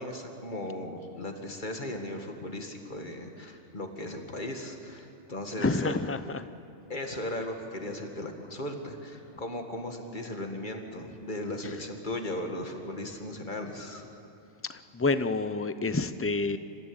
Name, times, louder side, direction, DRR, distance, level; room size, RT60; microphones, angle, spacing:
voice 1, 0.0-6.0 6.9-14.1, left 1 dB, 45° left, 3 dB, 2.1 m, -37 dB
voice 2, 5.6-6.4 14.7-16.6, left 3 dB, 15° left, 11 dB, 0.5 m, -28 dB
27.5 x 15.0 x 8.9 m, 2.7 s
omnidirectional pair, 1.2 m